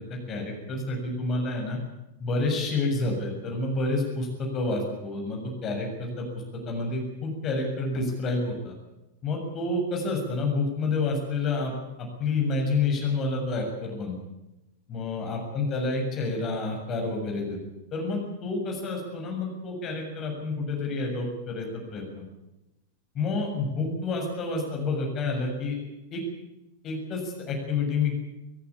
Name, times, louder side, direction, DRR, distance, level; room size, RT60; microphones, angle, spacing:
voice 1, 0.1-1.8 2.2-8.7 9.2-11.7 12.0-14.2 14.9-17.6 17.9-22.2 23.1-25.8 26.1-26.2 26.8-28.2, left 3 dB, 30° left, 1 dB, 7.2 m, -29 dB
24.0 x 15.5 x 8.5 m, 0.96 s
figure-of-eight pair, 90°, 0 cm